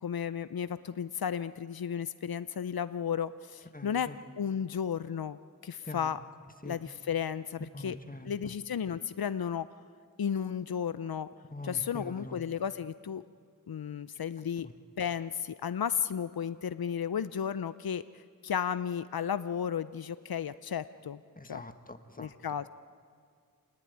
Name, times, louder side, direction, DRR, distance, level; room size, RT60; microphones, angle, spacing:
voice 1, 0.0-6.2 6.6-8.0 8.2-9.7 10.2-11.3 11.6-13.2 13.7-14.7 15.0-21.2 21.5-21.6 22.2-22.7, left 8 dB, 85° left, 14 dB, 0.6 m, -34 dB
voice 2, 3.7-4.2 5.9-6.1 6.6-6.8 7.7-8.5 11.5-12.4 21.4-22.3, left 1 dB, 25° left, 8 dB, 1.6 m, -44 dB
27.5 x 19.0 x 9.6 m, 2.1 s
wide cardioid pair, 50°, 35 cm